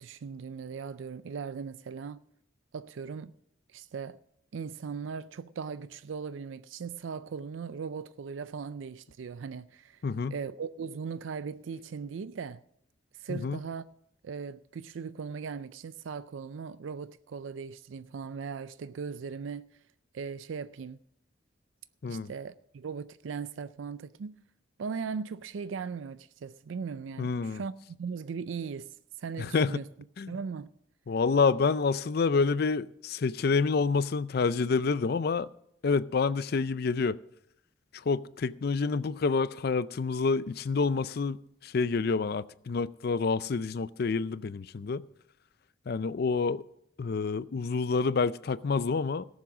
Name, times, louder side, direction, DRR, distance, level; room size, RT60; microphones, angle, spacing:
voice 1, 0.0-2.2 2.7-3.3 3.7-4.2 4.5-10.0 10.3-12.6 13.2-13.9 14.2-19.7 20.1-21.0 22.1-24.4 24.8-28.9 29.2-29.9 30.3-30.7, right 5 dB, 85° right, 0.4 m, -38 dB
voice 2, 10.0-10.4 13.3-13.6 22.0-22.3 27.2-27.6 29.4-29.8 30.2-30.3 31.1-35.5 35.8-37.2 37.9-45.0 45.9-46.6 47.0-49.3, left 4 dB, 55° left, 0.4 m, -28 dB
17.5 x 7.3 x 6.0 m
head